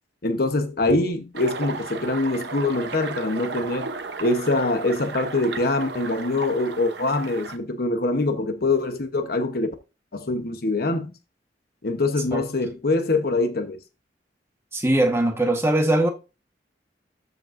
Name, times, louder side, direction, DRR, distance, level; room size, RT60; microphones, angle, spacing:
voice 1, 0.2-3.9 4.2-9.7 10.1-11.1 11.8-13.8, left 2 dB, 55° left, 1.0 m, -24 dB
sound 1, 1.3-7.6, right 4 dB, 70° right, 0.9 m, -34 dB
voice 2, 14.7-16.1, right 1 dB, 15° right, 1.3 m, -21 dB
13.0 x 5.3 x 2.6 m
head